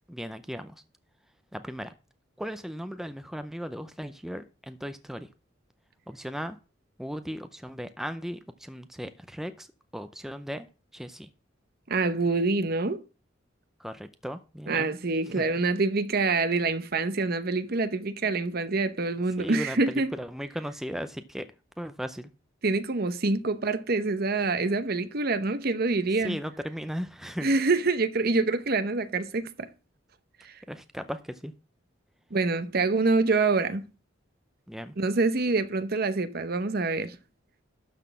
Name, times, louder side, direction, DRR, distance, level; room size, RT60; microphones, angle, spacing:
voice 1, 0.1-0.8 1.5-1.9 2.4-5.3 6.1-6.6 7.0-9.7 9.9-10.7 10.9-11.3 13.8-15.0 15.4-15.5 19.4-21.5 21.8-22.3 26.2-27.5 30.7-31.5 34.7-34.9, equal, ahead, 0.5 m, -36 dB
voice 2, 11.9-13.0 14.7-20.1 22.6-26.4 27.4-29.7 30.4-30.5 32.3-33.9 35.0-37.2, right 3 dB, 50° right, 0.8 m, -26 dB
12.0 x 4.1 x 7.4 m
head